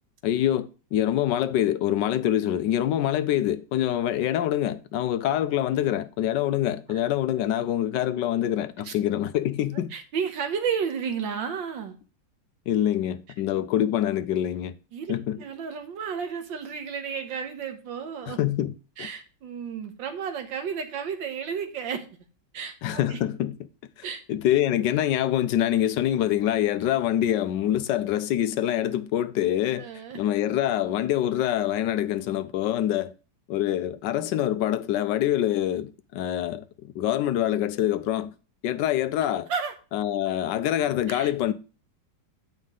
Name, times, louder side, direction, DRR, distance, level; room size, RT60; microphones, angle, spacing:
voice 1, 0.2-9.9 12.7-14.7 15.1-15.4 18.3-18.7 19.0-19.1 22.8-23.6 24.3-29.9 30.1-33.1 33.5-38.3 38.6-39.5 39.9-41.5, left 12 dB, 75° left, 1.2 m, -25 dB
voice 2, 9.9-12.0 14.9-18.4 19.0-22.1 22.5-23.2 24.0-24.2 29.8-30.2 39.5-39.7 41.1-41.5, right 6 dB, 85° right, 1.8 m, -32 dB
9.3 x 5.3 x 3.7 m
omnidirectional pair, 2.0 m